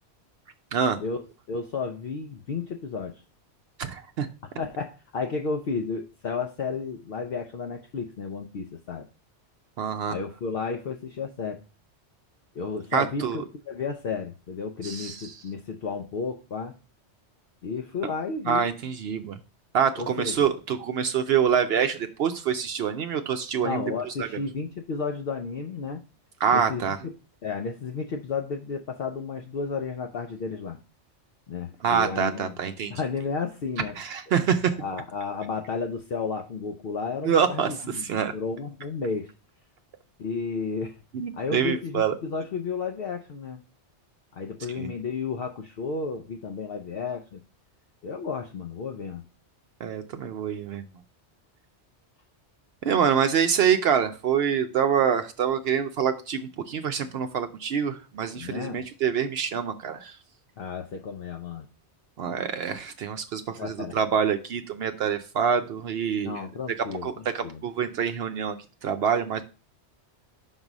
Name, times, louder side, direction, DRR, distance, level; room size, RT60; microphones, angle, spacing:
voice 1, 1.0-3.2 4.4-9.0 10.1-11.6 12.5-16.8 17.6-18.7 20.0-20.5 23.6-26.0 26.5-27.1 27.4-30.8 31.5-32.5 32.9-34.0 34.8-39.3 40.2-41.0 41.3-43.6 44.3-47.4 48.0-49.2 58.3-58.8 60.6-61.7 63.6-64.0 66.2-67.6, left 5 dB, 60° left, 3 dB, 0.8 m, -32 dB
voice 2, 3.8-4.3 9.8-10.1 12.9-13.4 14.8-15.3 18.5-19.4 19.7-23.9 24.2-24.3 26.4-27.0 31.8-32.9 34.0-34.7 37.2-38.3 41.1-42.1 44.8-44.9 49.8-50.9 52.8-60.1 62.2-66.4 67.0-68.6 68.8-69.4, right 7 dB, 65° right, 8 dB, 0.8 m, -26 dB
5.3 x 4.0 x 5.9 m, 0.34 s
omnidirectional pair, 1.2 m